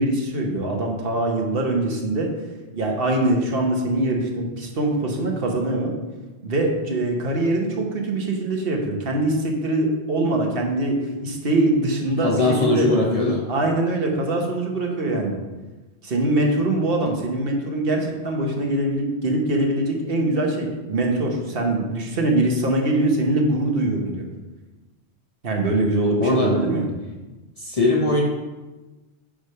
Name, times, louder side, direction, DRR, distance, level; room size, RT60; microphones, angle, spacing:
voice 1, 0.0-2.3 2.7-5.9 6.4-12.9 13.5-15.3 16.0-24.3 25.4-26.9, right 2 dB, 60° right, 1 dB, 1.3 m, -23 dB
voice 2, 12.2-13.5 26.2-26.6 27.6-28.2, left 2 dB, 35° left, -2 dB, 0.8 m, -20 dB
8.7 x 3.4 x 5.6 m, 1.2 s
omnidirectional pair, 1.1 m